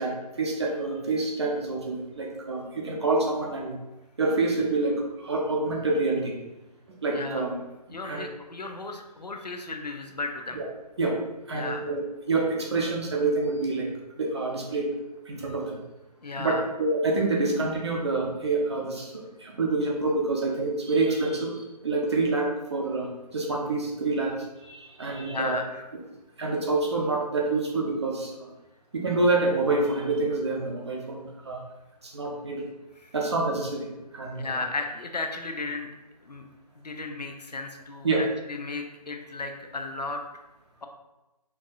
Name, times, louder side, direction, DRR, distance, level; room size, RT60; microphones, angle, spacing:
voice 1, 0.0-3.8 4.2-6.3 7.0-7.6 8.1-8.3 10.5-10.7 11.0-11.1 11.5-13.9 14.2-14.9 15.2-15.7 16.4-25.6 26.4-28.5 28.9-31.6 32.0-32.7 33.1-33.9 34.1-34.6 38.0-38.2, right 3 dB, 40° right, -1 dB, 0.8 m, -27 dB
voice 2, 7.1-7.4 7.9-10.6 11.5-11.9 16.2-16.6 25.2-25.9 33.0-33.1 34.4-35.9 36.2-36.4 36.8-40.2, left 3 dB, 80° left, 4 dB, 0.6 m, -34 dB
4.5 x 2.6 x 2.6 m, 1.0 s
figure-of-eight pair, 150°, 21 cm